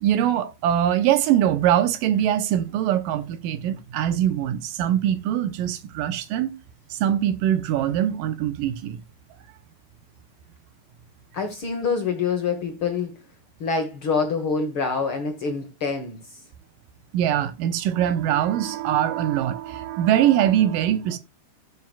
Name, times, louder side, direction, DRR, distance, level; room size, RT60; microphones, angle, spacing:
voice 1, 0.0-6.5 6.9-9.0 17.1-21.2, right 11 dB, 75° right, 2.4 m, -22 dB
voice 2, 11.3-13.1 13.6-16.4, left 5 dB, 70° left, 1.2 m, -26 dB
15.0 x 7.7 x 2.4 m
omnidirectional pair, 4.4 m